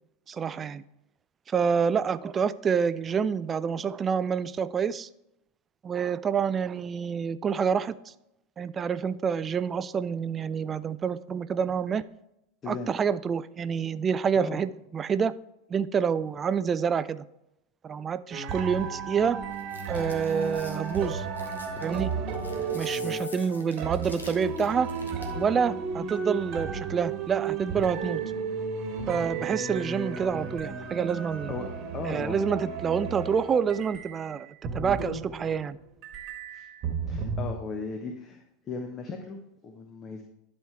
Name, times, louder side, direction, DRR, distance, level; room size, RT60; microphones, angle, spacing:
voice 1, 0.3-0.8 1.5-5.1 5.8-7.9 8.6-12.0 12.7-15.3 15.7-17.2 17.8-19.4 19.9-21.3 21.8-22.1 22.7-24.9 25.3-28.2 29.1-31.5 32.0-34.5 34.7-35.8, right 6 dB, 25° right, 15 dB, 0.4 m, -27 dB
sound 1, 18.3-35.8 36.0-37.6, right 5 dB, 40° right, 1.3 m, -34 dB
sound 2, 19.5-25.4, left 2 dB, 85° left, 1.2 m, -47 dB
voice 2, 22.5-23.2 31.5-31.7 31.9-32.4 36.5-36.6 37.1-40.2, left 4 dB, 30° left, 3 dB, 1.1 m, -37 dB
11.0 x 4.4 x 4.6 m, 0.85 s
figure-of-eight pair, 85°, 0 cm